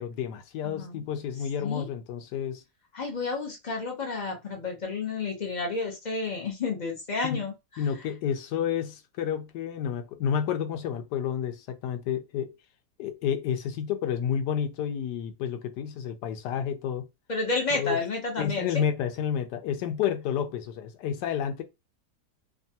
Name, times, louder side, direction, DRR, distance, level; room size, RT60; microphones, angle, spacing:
voice 1, 0.0-2.6 7.2-7.4 7.8-12.5 13.0-17.1 17.7-18.0 18.4-21.6, left 8 dB, 85° left, 1.2 m, -30 dB
voice 2, 0.6-1.0 1.6-1.9 2.9-7.9 17.3-18.8, left 3 dB, 60° left, 0.4 m, -31 dB
3.0 x 2.3 x 2.7 m
omnidirectional pair, 1.8 m